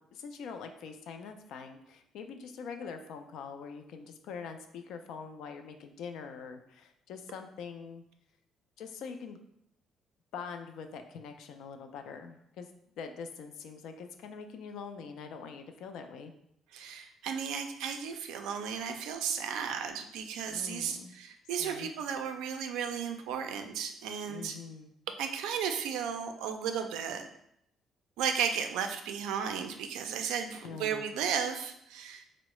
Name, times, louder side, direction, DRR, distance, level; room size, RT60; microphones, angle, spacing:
voice 1, 0.0-8.0 8.8-9.4 10.3-12.7 13.0-16.3 20.5-21.1 21.6-21.9 24.3-24.9 30.6-31.1, left 5 dB, 80° left, 6 dB, 0.3 m, -44 dB
voice 2, 16.7-24.6 25.2-27.2 28.2-32.3, right 7 dB, 90° right, 6 dB, 0.3 m, -34 dB
3.6 x 2.0 x 3.0 m, 0.76 s
cardioid pair, 90°, 0 cm